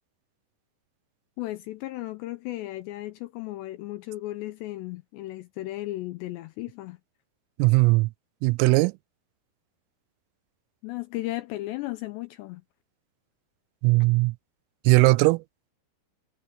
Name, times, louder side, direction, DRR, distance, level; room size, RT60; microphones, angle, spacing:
voice 1, 1.4-7.0 10.8-12.6, left 17 dB, 85° left, 2.5 m, -35 dB
voice 2, 7.6-8.1 8.4-8.9 13.8-14.3 14.9-15.4, right 24 dB, 90° right, 3.2 m, -19 dB
omnidirectional pair, 5.7 m